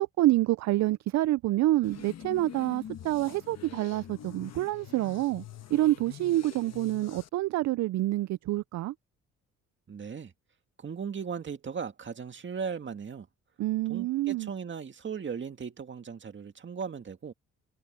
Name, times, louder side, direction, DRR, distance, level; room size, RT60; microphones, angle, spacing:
voice 1, 0.0-5.4 5.7-8.9 13.6-14.5, right 16 dB, 65° right, 0.4 m, -27 dB
sound 1, 1.8-7.3, left 10 dB, 60° left, 1.5 m, -45 dB
voice 2, 9.9-10.3 10.8-13.3 13.9-17.3, right 6 dB, 40° right, 2.1 m, -37 dB
cardioid pair, 90°, 30 cm